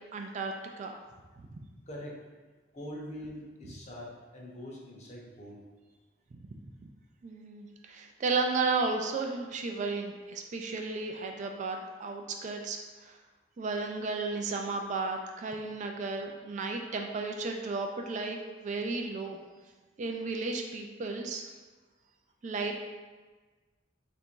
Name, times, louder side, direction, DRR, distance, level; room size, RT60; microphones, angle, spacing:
voice 1, 0.1-1.0 1.4-1.6 7.2-13.2 13.6-19.4 20.0-21.5 22.4-22.8, right 3 dB, 40° right, 3 dB, 0.3 m, -34 dB
voice 2, 1.9-2.2 2.7-5.6, equal, 40° left, -3 dB, 0.8 m, -43 dB
3.3 x 2.6 x 4.5 m, 1.3 s
head